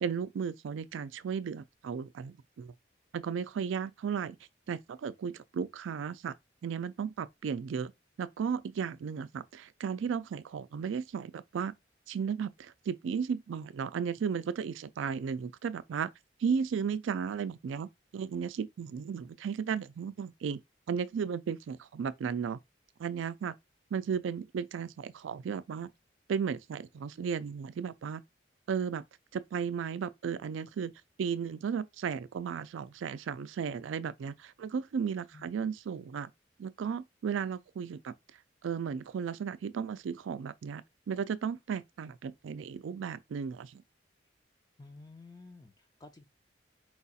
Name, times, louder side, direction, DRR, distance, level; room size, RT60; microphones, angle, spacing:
voice 1, 0.0-2.7 3.1-4.4 4.7-6.3 6.6-7.9 8.2-11.7 12.1-16.1 16.4-20.6 20.9-22.6 23.0-23.5 23.9-25.9 26.3-28.2 28.7-29.0 29.3-30.9 31.2-36.3 36.6-38.1 38.6-43.8, right 6 dB, 90° right, 0.4 m, -35 dB
voice 2, 44.8-46.2, left 3 dB, 20° left, 0.4 m, -52 dB
4.6 x 2.3 x 4.1 m
head